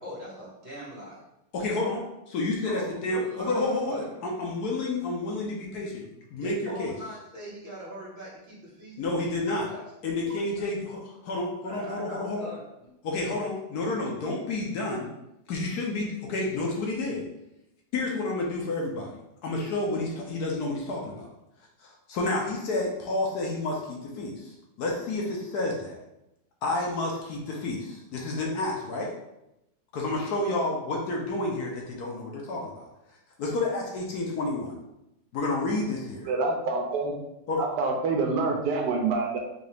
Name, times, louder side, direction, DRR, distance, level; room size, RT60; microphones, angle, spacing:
voice 1, 0.0-1.2 2.6-4.2 6.4-9.8 10.2-10.6 11.6-12.9, right 1 dB, 30° right, -8 dB, 1.7 m, -41 dB
voice 2, 1.5-6.1 6.3-6.9 9.0-9.7 10.0-12.5 13.0-15.1 15.5-17.3 17.9-19.1 19.4-21.3 21.8-26.0 26.6-29.1 29.9-32.9 33.4-34.7 35.3-36.3 37.5-37.6, left 2 dB, 70° left, -1 dB, 1.1 m, -30 dB
voice 3, 36.3-37.2 37.6-39.4, right 3 dB, 80° right, 1 dB, 1.2 m, -26 dB
3.9 x 2.8 x 3.3 m, 0.87 s
omnidirectional pair, 1.9 m